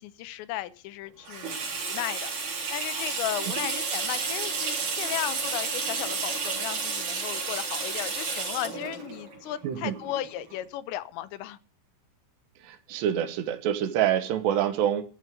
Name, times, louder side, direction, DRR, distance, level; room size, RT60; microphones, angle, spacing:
voice 1, 0.0-2.3 2.7-11.6, left 13 dB, 85° left, 3.1 m, -35 dB
Water tap faucet / Sink (filling or washing), 1.3-10.6, right 4 dB, 60° right, 5.4 m, -31 dB
voice 2, 9.6-10.0 12.6-15.0, right 10 dB, 80° right, 3.1 m, -26 dB
14.0 x 5.4 x 7.6 m
omnidirectional pair, 5.1 m